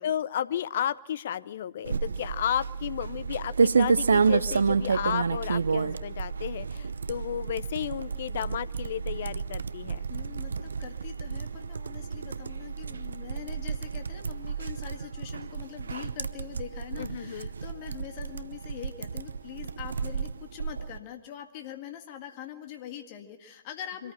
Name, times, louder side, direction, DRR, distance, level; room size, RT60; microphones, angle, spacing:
voice 1, 0.0-10.1 17.0-17.5 24.0-24.1, left 10 dB, 60° left, 19 dB, 0.7 m, -33 dB
sound 1, 1.9-21.0, right 5 dB, 75° right, 0.7 m, -30 dB
voice 2, 10.1-24.1, left 10 dB, 40° left, 5 dB, 1.8 m, -43 dB
24.5 x 14.0 x 9.1 m, 1.2 s
figure-of-eight pair, 115°, 0 cm